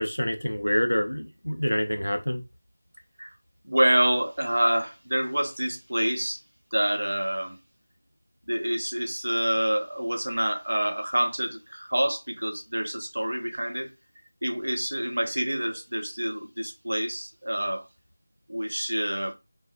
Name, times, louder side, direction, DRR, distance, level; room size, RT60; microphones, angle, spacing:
voice 1, 0.0-2.4, equal, 75° left, 0.5 m, -27 dB
voice 2, 3.6-6.4 6.7-7.6 8.5-13.9 14.4-17.9 18.5-19.3, right 1 dB, 60° right, 0.5 m, -27 dB
3.2 x 2.0 x 2.5 m
figure-of-eight pair, 170°, 0 cm